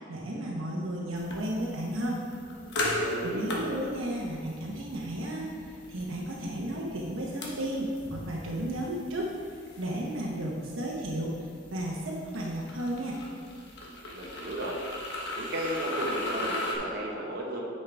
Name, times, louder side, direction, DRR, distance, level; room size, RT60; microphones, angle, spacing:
voice 1, 0.1-2.2 3.2-9.3 9.8-11.3 11.7-13.2, right 1 dB, 75° right, -2 dB, 1.0 m, -33 dB
sound 1, 1.2-16.7, left 1 dB, 60° left, 1.2 m, -38 dB
voice 2, 3.0-3.5 14.1-14.8 15.4-17.6, right 1 dB, 50° right, -2 dB, 1.2 m, -34 dB
9.5 x 5.5 x 3.4 m, 2.2 s
head